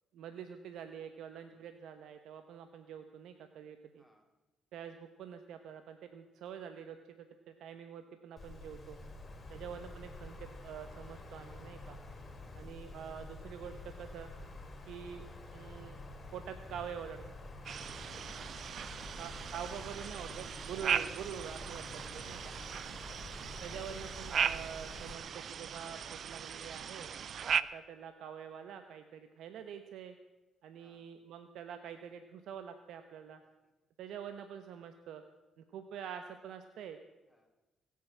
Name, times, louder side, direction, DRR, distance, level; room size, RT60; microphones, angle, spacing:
voice 1, 0.1-4.0 4.7-9.0 9.5-12.0 12.5-14.3 14.9-15.2 15.5-16.0 16.3-17.3 19.2-21.9 22.1-22.6 23.6-27.1 27.6-30.1 30.6-33.4 34.0-35.2 35.7-37.0, right 8 dB, 80° right, 8 dB, 1.0 m, -46 dB
voice 2, 1.5-1.7 4.0-4.3 9.3-9.5 12.3-12.6 30.8-31.1 33.6-33.7 37.3-37.5, equal, 5° right, 2 dB, 3.9 m, -67 dB
Wind, 8.4-25.1, left 2 dB, 35° left, 3.3 m, -49 dB
sound 1, 17.7-27.6, right 7 dB, 55° right, 0.6 m, -38 dB
20.5 x 8.4 x 7.5 m, 1.1 s
cardioid pair, 90°, 0 cm